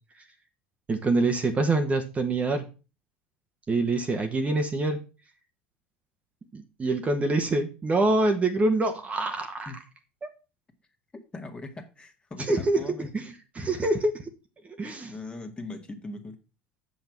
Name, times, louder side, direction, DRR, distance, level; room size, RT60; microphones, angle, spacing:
voice 1, 0.9-2.6 3.7-5.0 6.5-9.7 10.2-10.3 12.5-14.1 14.8-15.1, right 2 dB, 25° right, 6 dB, 1.4 m, -25 dB
voice 2, 11.3-13.1 14.8-16.4, left 2 dB, 20° left, 4 dB, 1.9 m, -40 dB
7.7 x 5.6 x 6.0 m, 0.32 s
figure-of-eight pair, 75°, 6 cm